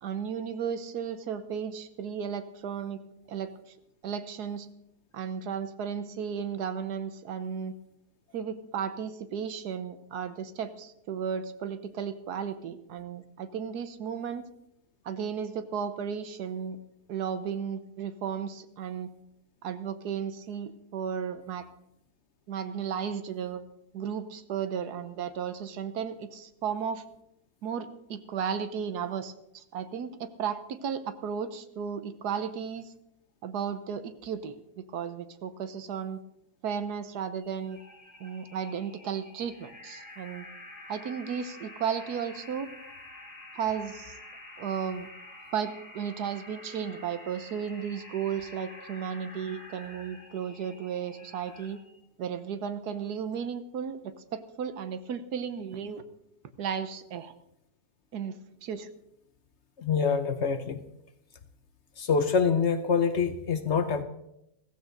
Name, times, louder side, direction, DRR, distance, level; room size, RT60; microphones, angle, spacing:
voice 1, 0.0-3.0 3.3-3.5 4.0-4.7 5.1-7.7 8.3-14.4 15.0-16.8 17.1-19.1 19.6-21.7 22.5-23.6 23.9-27.0 27.6-32.9 33.4-36.2 36.6-37.8 38.2-40.5 40.9-42.7 43.5-44.2 44.6-45.1 45.5-51.8 52.2-56.0 56.6-57.3 58.1-58.9, right 7 dB, 85° right, 11 dB, 1.4 m, -34 dB
sound 1, 37.4-51.9, left 1 dB, 5° right, 4.2 m, -48 dB
voice 2, 59.8-60.8 62.0-64.0, left 6 dB, 55° left, 10 dB, 0.9 m, -25 dB
15.0 x 15.0 x 3.9 m, 0.81 s
omnidirectional pair, 1.7 m